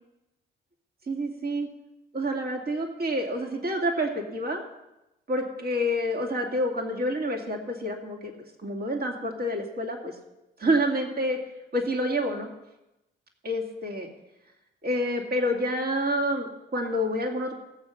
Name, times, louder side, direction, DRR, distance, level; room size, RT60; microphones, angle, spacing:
voice 1, 1.1-1.7 2.1-4.6 5.3-8.3 8.6-10.1 10.6-11.4 11.7-12.5 13.4-14.1 14.8-17.5, equal, 50° right, 2 dB, 2.4 m, -28 dB
16.5 x 7.3 x 5.7 m, 0.95 s
cardioid pair, 90°, 20 cm